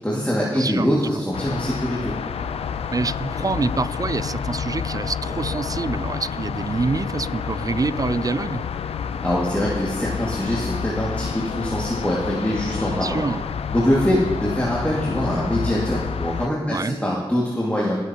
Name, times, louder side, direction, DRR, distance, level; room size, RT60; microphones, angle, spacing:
voice 1, 0.0-2.1 9.2-13.2 13.7-18.0, equal, 15° left, -6 dB, 2.4 m, -23 dB
voice 2, 0.5-1.0 2.9-8.6 12.9-13.4 16.7-17.0, right 3 dB, 40° right, 16 dB, 0.5 m, -26 dB
sound 1, 1.3-16.5, left 7 dB, 90° left, 0.4 m, -29 dB
21.5 x 8.1 x 3.0 m, 1.4 s
cardioid pair, 45°, 10 cm